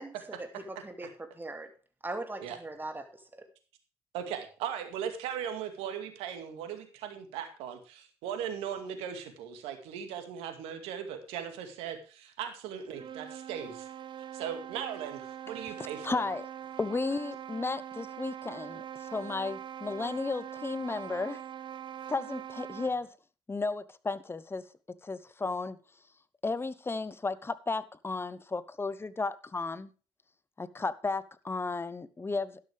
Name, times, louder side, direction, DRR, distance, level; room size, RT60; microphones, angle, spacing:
voice 1, 0.0-1.7 2.0-3.5, right 2 dB, 20° right, 2.5 m, -40 dB
voice 2, 4.1-13.9 14.3-16.2, right 8 dB, 75° right, 2.2 m, -38 dB
sound 1, 12.8-23.1, right 9 dB, 50° right, 0.9 m, -43 dB
voice 3, 16.0-16.5 16.8-21.4 22.1-23.1 23.5-24.6 25.0-25.8 26.4-29.9 30.6-32.6, left 3 dB, 25° left, 1.0 m, -34 dB
11.5 x 11.5 x 3.5 m
hypercardioid pair, 50°, 10 cm